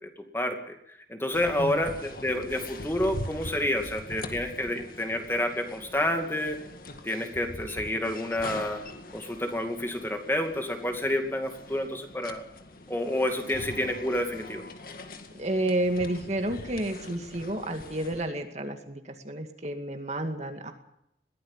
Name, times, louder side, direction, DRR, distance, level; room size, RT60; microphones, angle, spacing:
voice 1, 0.0-6.6 7.0-8.8 9.1-12.4 12.9-14.6, left 1 dB, 15° left, 4 dB, 2.4 m, -29 dB
sound 1, 1.3-18.3, left 2 dB, 50° left, 2.1 m, -43 dB
voice 2, 15.3-20.7, right 1 dB, 40° right, 5 dB, 2.1 m, -31 dB
22.0 x 16.0 x 7.4 m, 0.78 s
head